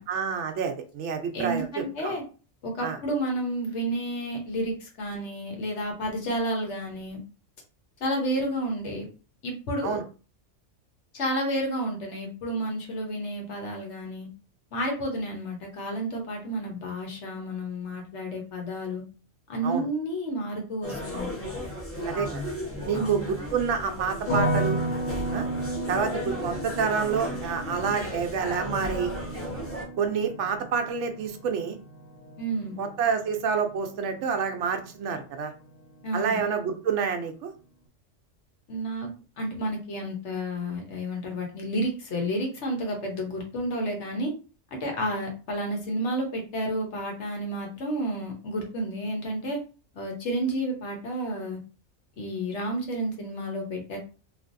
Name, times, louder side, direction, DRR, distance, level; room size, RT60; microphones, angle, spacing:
voice 1, 0.1-2.2 2.8-3.0 9.8-10.0 19.6-19.9 22.0-22.5 22.9-24.8 25.3-25.5 25.9-29.1 30.0-31.8 32.8-35.5 36.1-37.5, right 6 dB, 70° right, 6 dB, 0.9 m, -28 dB
voice 2, 1.3-2.2 2.6-7.2 8.0-9.0 9.4-10.0 11.1-14.3 14.7-19.0 19.5-21.4 22.9-23.3 32.4-32.8 36.0-36.4 38.7-39.1 39.4-44.3 44.7-49.6 49.9-51.6 52.2-54.0, right 1 dB, 65° left, 2 dB, 1.2 m, -31 dB
sound 1, 20.8-29.8, left 1 dB, 15° left, 0.6 m, -35 dB
sound 2, 24.3-35.3 35.6-36.4, right 1 dB, 85° left, 1.5 m, -34 dB
3.3 x 2.5 x 2.5 m, 0.36 s
omnidirectional pair, 1.3 m